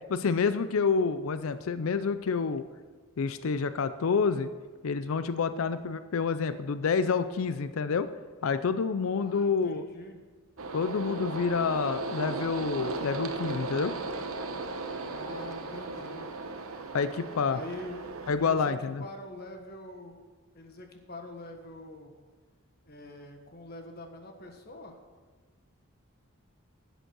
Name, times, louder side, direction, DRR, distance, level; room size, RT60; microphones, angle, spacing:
voice 1, 0.1-2.7 3.2-4.5 4.8-8.1 8.4-9.8 10.7-13.9 16.9-17.6 18.3-19.0, left 5 dB, 75° left, 12 dB, 0.5 m, -28 dB
voice 2, 5.5-6.0 9.1-10.2 14.9-16.3 17.4-20.2 20.5-22.1 22.8-25.0, left 1 dB, 45° left, 4 dB, 1.5 m, -45 dB
sound 1, 10.6-18.3, right 3 dB, 80° right, 1.0 m, -36 dB
11.0 x 7.9 x 6.1 m, 1.4 s
head